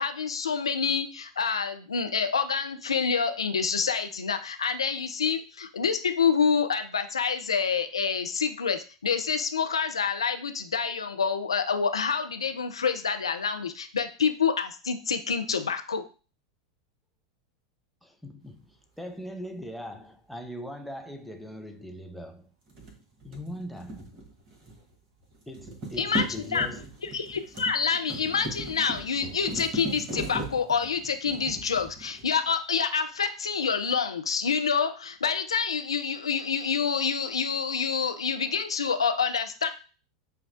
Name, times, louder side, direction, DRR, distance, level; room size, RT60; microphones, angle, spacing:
voice 1, 0.0-16.0 25.9-26.7 27.0-39.7, left 6 dB, 75° left, 0.4 m, -27 dB
voice 2, 18.0-22.5 23.2-24.2 25.5-26.8, equal, ahead, 0.5 m, -41 dB
sound 1, 22.7-24.9 25.2-32.5, right 2 dB, 35° right, 1.2 m, -38 dB
6.8 x 2.3 x 2.4 m
figure-of-eight pair, 85°, 3 cm